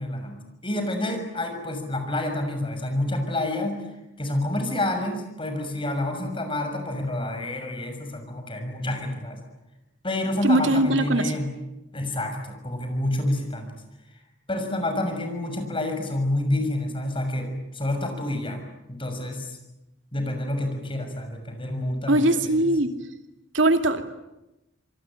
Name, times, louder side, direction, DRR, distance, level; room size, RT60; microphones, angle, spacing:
voice 1, 0.0-3.8 4.2-9.4 10.0-11.5 11.9-13.7 14.5-17.5 17.7-18.6 18.9-19.6 20.1-22.5, left 1 dB, 30° left, 5 dB, 6.5 m, -28 dB
voice 2, 10.4-11.3 22.1-22.9 23.5-24.0, right 1 dB, 75° right, 7 dB, 2.5 m, -20 dB
27.0 x 23.5 x 9.0 m, 0.95 s
head